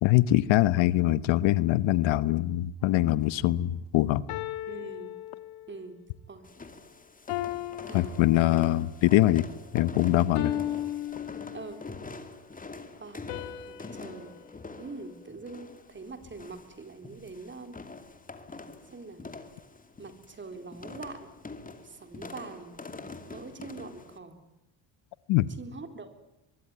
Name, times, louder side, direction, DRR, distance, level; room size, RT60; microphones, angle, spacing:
voice 1, 0.0-4.2 7.9-9.5 9.7-10.5 25.3-25.5, left 15 dB, 70° left, 16 dB, 1.2 m, -23 dB
sound 1, 2.8-3.1 4.3-5.9 7.3-8.9 10.3-12.0 13.3-15.7, left 13 dB, 85° left, 2.4 m, -37 dB
voice 2, 4.7-5.1 5.7-6.0 6.3-6.4 7.8-8.2 10.4-10.6 11.5-11.8 13.0-13.3 13.7-14.3 14.8-17.8 18.9-19.3 20.0-21.3 21.8-22.8 23.2-24.4 25.6-26.1, right 3 dB, 25° right, 8 dB, 4.1 m, -43 dB
sound 2, 6.4-24.2, left 3 dB, 15° left, 2.6 m, -45 dB
24.0 x 23.0 x 9.7 m, 0.92 s
cardioid pair, 125°, 48 cm